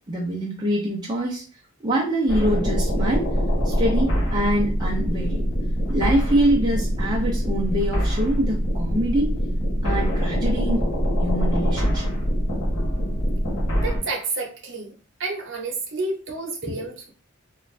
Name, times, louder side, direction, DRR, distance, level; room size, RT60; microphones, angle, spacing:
voice 1, 0.1-1.4 1.8-3.3 3.6-5.5 5.9-9.3 9.8-10.9 11.2-12.1, right 1 dB, 20° right, -4 dB, 0.5 m, -24 dB
sound 1, 2.3-14.0, equal, 60° left, 1.0 m, -23 dB
voice 2, 13.8-14.9 15.2-17.1, right 3 dB, 55° right, 0 dB, 0.8 m, -30 dB
2.5 x 2.3 x 3.2 m, 0.37 s
head